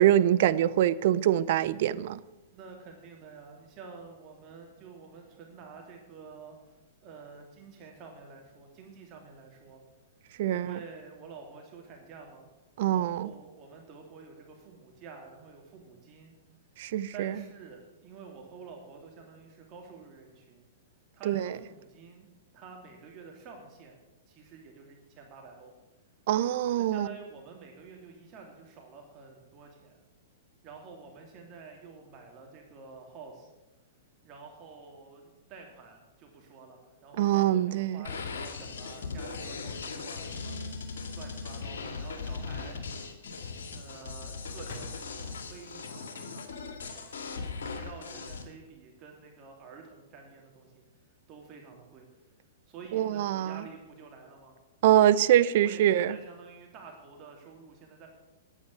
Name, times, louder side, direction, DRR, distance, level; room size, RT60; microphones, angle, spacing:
voice 1, 0.0-2.2 10.4-10.8 12.8-13.3 16.8-17.3 21.3-21.6 26.3-27.1 37.2-38.0 52.9-53.6 54.8-56.2, right 12 dB, 55° right, 0.5 m, -24 dB
voice 2, 2.5-6.7 7.0-9.8 10.5-12.5 12.9-16.4 17.1-20.7 21.1-22.3 22.5-24.0 24.3-25.7 26.8-30.0 30.6-33.5 34.2-40.8 41.1-42.8 43.7-47.3 47.7-50.8 51.3-52.1 52.7-55.1 55.5-58.1, right 5 dB, 35° right, 2.8 m, -49 dB
sound 1, 38.0-48.4, left 4 dB, 70° left, 2.1 m, -39 dB
sound 2, 44.6-46.5, left 1 dB, 50° left, 4.2 m, -49 dB
9.9 x 9.1 x 9.4 m
hypercardioid pair, 115°, 0 cm